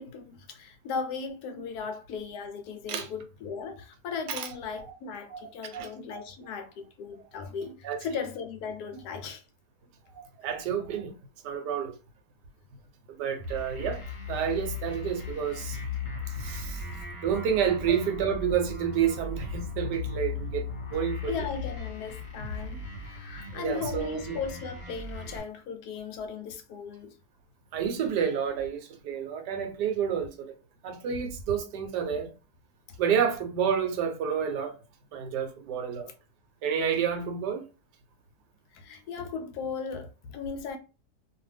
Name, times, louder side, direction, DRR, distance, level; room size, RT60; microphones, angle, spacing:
voice 1, 0.0-9.4 17.9-18.0 21.3-27.2 38.7-40.8, left 5 dB, 75° left, 1.0 m, -37 dB
voice 2, 5.3-6.2 7.8-8.0 10.1-11.1 11.4-11.9 13.2-14.0 14.3-15.8 16.4-16.9 17.2-20.7 20.9-21.3 23.5-24.4 27.7-30.5 30.8-32.3 33.0-34.7 35.1-36.1 36.6-37.6, right 8 dB, 75° right, 1.2 m, -29 dB
sound 1, 13.4-25.4, left 4 dB, 45° left, 1.0 m, -37 dB
2.6 x 2.4 x 3.2 m
omnidirectional pair, 1.8 m